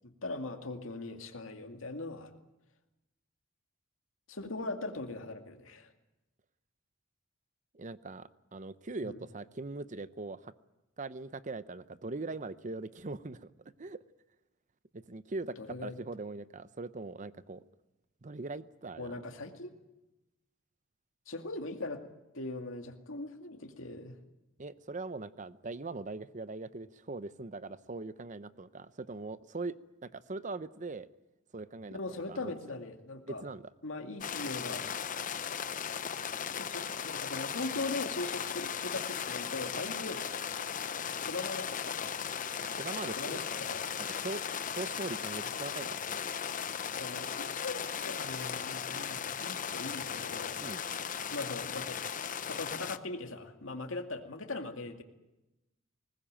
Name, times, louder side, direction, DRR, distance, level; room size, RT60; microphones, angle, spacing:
voice 1, 0.0-2.3 4.3-5.9 9.0-9.2 15.6-16.0 19.0-19.7 21.3-22.0 22.3-24.2 31.9-33.4 33.8-35.2 36.5-40.3 41.1-42.0 43.2-43.9 47.0-50.6 51.3-52.0 52.4-55.0, left 2 dB, 85° left, 5 dB, 2.3 m, -40 dB
voice 2, 7.7-10.5 11.0-13.5 13.8-14.0 14.9-17.6 18.2-19.1 24.6-29.8 30.0-31.1 31.5-32.4 33.3-33.7 42.6-43.4 44.2-46.2 50.6-50.8, right 3 dB, 40° right, 15 dB, 0.7 m, -41 dB
sound 1, 34.2-53.0, left 7 dB, 40° left, 0.7 m, -37 dB
21.0 x 19.5 x 8.9 m, 1.0 s
head